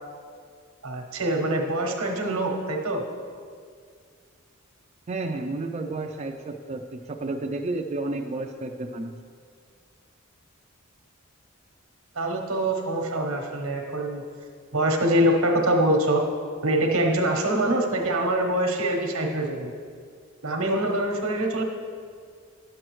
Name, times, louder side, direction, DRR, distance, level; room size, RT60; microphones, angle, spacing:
voice 1, 0.8-3.0 12.1-14.2 14.7-16.2 16.6-19.7 20.4-21.6, right 1 dB, 85° right, 2 dB, 1.1 m, -24 dB
voice 2, 5.1-9.2, right 2 dB, 30° right, 3 dB, 0.4 m, -31 dB
11.0 x 7.6 x 3.1 m, 2.1 s
head